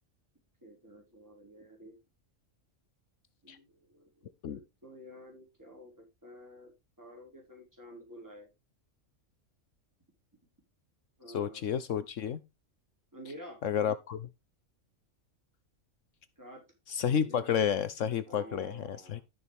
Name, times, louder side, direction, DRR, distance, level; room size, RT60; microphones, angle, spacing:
voice 1, 0.6-2.0 3.4-6.7 7.0-8.5 11.2-11.6 13.1-13.6 16.4-16.6 17.2-17.5 18.3-19.2, equal, 15° right, 4.9 m, -50 dB
voice 2, 11.3-12.4 13.6-14.3 16.9-19.2, left 8 dB, 70° left, 1.1 m, -31 dB
13.0 x 6.9 x 3.4 m
omnidirectional pair, 1.3 m